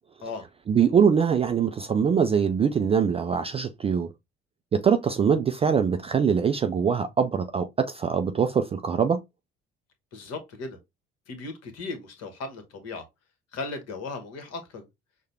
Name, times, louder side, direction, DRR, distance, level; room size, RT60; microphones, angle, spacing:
voice 1, 0.7-4.1 4.7-9.2, right 7 dB, 20° right, 0.3 m, -23 dB
voice 2, 10.1-10.8 11.3-13.0 13.5-14.9, left 3 dB, 50° left, 1.3 m, -37 dB
6.4 x 2.2 x 2.7 m
figure-of-eight pair, 50°, 33 cm